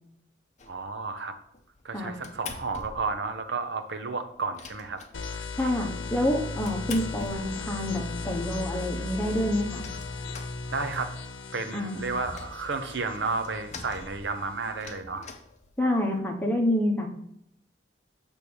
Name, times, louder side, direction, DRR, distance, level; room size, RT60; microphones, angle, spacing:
sound 1, 0.6-1.0 1.5-3.3 3.5-3.6 3.9-4.0 4.3-5.6 6.2-8.0 8.5-8.6 8.9-9.0 9.1-11.2 11.6-16.2, left 4 dB, 40° left, 0.7 m, -45 dB
voice 1, 0.7-1.4 1.8-5.0 5.4-5.5 10.7-11.1 11.5-15.2, right 4 dB, 75° right, 7 dB, 0.8 m, -32 dB
sound 2, 5.1-14.8, left 3 dB, 90° left, 0.7 m, -37 dB
voice 2, 5.6-9.9 11.7-12.2 15.8-17.1, left 1 dB, 10° left, -1 dB, 1.1 m, -27 dB
6.9 x 3.5 x 6.2 m, 0.73 s
head